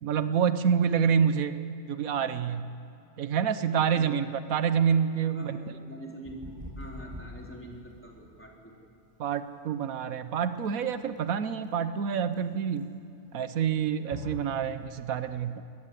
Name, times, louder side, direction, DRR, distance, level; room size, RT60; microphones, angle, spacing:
voice 1, 0.0-1.6 1.9-2.7 3.2-5.6 9.2-12.9 13.3-15.6, right 7 dB, 85° right, 11 dB, 1.3 m, -27 dB
voice 2, 3.9-4.3 5.3-8.7, right 1 dB, 10° left, -2 dB, 4.0 m, -44 dB
sound 1, 6.2-15.0, equal, 25° right, 7.9 m, -45 dB
22.5 x 19.5 x 8.4 m, 2.6 s
omnidirectional pair, 1.4 m